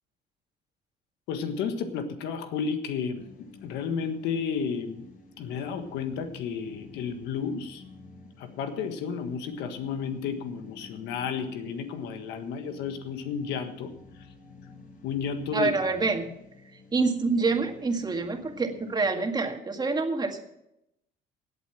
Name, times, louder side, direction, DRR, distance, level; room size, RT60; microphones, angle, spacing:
voice 1, 1.3-5.0 5.4-7.8 8.4-13.9 15.0-15.7, left 6 dB, 85° left, 8 dB, 1.6 m, -32 dB
sound 1, 3.1-19.1, left 4 dB, 55° left, 5.4 m, -51 dB
voice 2, 15.5-16.3 16.9-20.4, right 4 dB, 25° right, 4 dB, 2.0 m, -26 dB
16.5 x 8.3 x 5.9 m, 0.82 s
cardioid pair, 110°, 17 cm